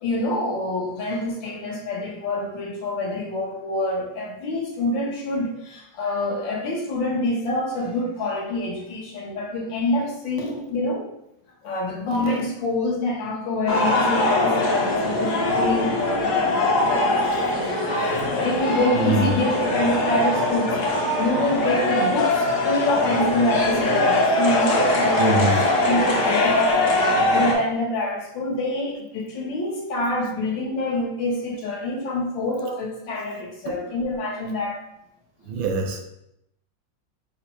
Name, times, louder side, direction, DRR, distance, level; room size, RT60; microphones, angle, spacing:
voice 1, 0.0-11.1 11.6-17.9 18.3-25.4 25.8-34.8 35.6-35.7, left 2 dB, 75° left, -1 dB, 1.7 m, -26 dB
sound 1, 13.7-27.5, left 1 dB, 55° left, 1.0 m, -22 dB
voice 2, 19.0-19.3 25.2-25.6 33.7-33.8 35.5-36.0, right 2 dB, 80° right, 4 dB, 1.4 m, -23 dB
5.5 x 2.0 x 4.5 m, 0.80 s
omnidirectional pair, 2.1 m